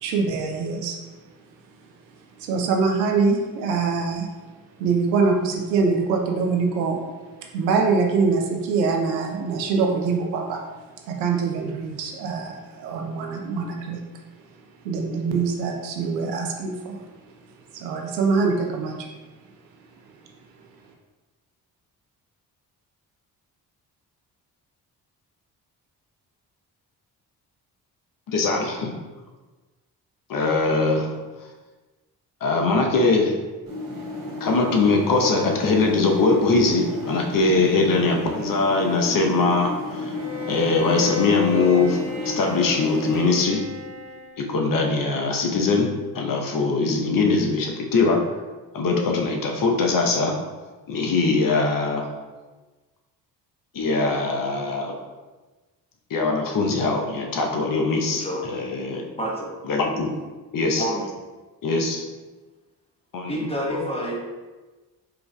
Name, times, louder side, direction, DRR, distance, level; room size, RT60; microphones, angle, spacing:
voice 1, 0.0-1.0 2.4-4.3 4.8-7.0 7.5-10.6 11.1-14.0 14.8-17.0 17.7-19.1, right 4 dB, 90° right, 1 dB, 0.6 m, -24 dB
voice 2, 28.3-28.9 30.3-31.1 32.4-33.4 34.4-40.1 40.5-42.0 42.2-43.6 44.4-45.9 46.1-48.2 48.7-50.3 50.9-52.1 53.7-54.9 56.1-59.0 59.7-60.1 60.5-60.8 61.6-62.0 63.1-63.8, left 3 dB, 40° left, 1 dB, 0.8 m, -22 dB
sound 1, 33.7-43.3, left 2 dB, 45° right, 1.2 m, -32 dB
Bowed string instrument, 40.1-44.5, left 5 dB, 25° right, 1.4 m, -34 dB
voice 3, 58.1-58.4 59.2-59.6 60.8-61.1 63.3-64.2, right 1 dB, 10° left, -3 dB, 1.0 m, -28 dB
4.6 x 2.5 x 2.2 m, 1.2 s
hypercardioid pair, 40°, 50 cm